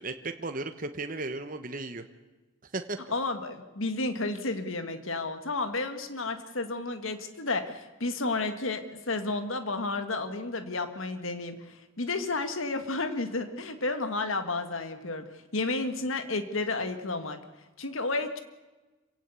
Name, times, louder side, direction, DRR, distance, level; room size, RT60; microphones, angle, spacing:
voice 1, 0.0-2.0 2.7-3.0, right 2 dB, 40° right, 7 dB, 1.1 m, -35 dB
voice 2, 3.1-17.4 17.8-18.4, left 3 dB, 75° left, 9 dB, 1.8 m, -32 dB
26.0 x 17.0 x 8.3 m, 1.2 s
head